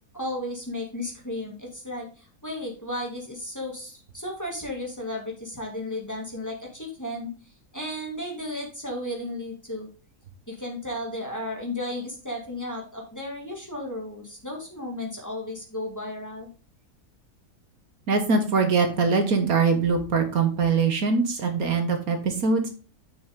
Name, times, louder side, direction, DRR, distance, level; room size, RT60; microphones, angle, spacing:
voice 1, 0.1-7.3 7.7-9.9 10.5-16.5, left 1 dB, 10° left, -1 dB, 2.2 m, -34 dB
voice 2, 18.1-22.7, right 4 dB, 70° right, 5 dB, 1.7 m, -22 dB
7.2 x 6.1 x 3.6 m, 0.36 s
omnidirectional pair, 1.6 m